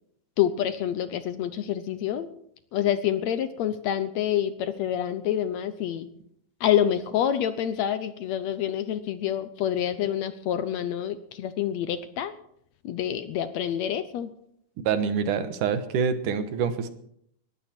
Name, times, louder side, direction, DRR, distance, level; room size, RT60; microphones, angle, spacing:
voice 1, 0.4-2.3 2.7-6.1 6.6-12.3 12.8-14.3, left 10 dB, 70° left, 12 dB, 1.8 m, -27 dB
voice 2, 14.9-16.9, right 6 dB, 80° right, 10 dB, 2.7 m, -26 dB
19.5 x 14.5 x 4.4 m, 0.71 s
omnidirectional pair, 3.6 m